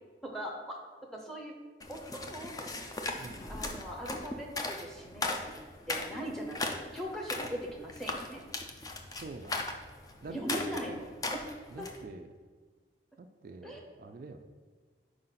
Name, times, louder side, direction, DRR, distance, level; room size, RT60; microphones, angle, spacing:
voice 1, 0.2-0.8 1.1-1.5 1.9-2.7 3.5-5.5 5.9-8.4 10.3-11.9 13.6-13.8, equal, ahead, 0 dB, 0.8 m, -40 dB
sound 1, 1.8-12.0, left 2 dB, 20° left, 0.4 m, -38 dB
voice 2, 9.1-9.6 10.2-10.9 11.7-12.3 13.2-14.5, right 3 dB, 50° right, 6 dB, 0.3 m, -45 dB
4.8 x 3.9 x 5.7 m, 1.5 s
head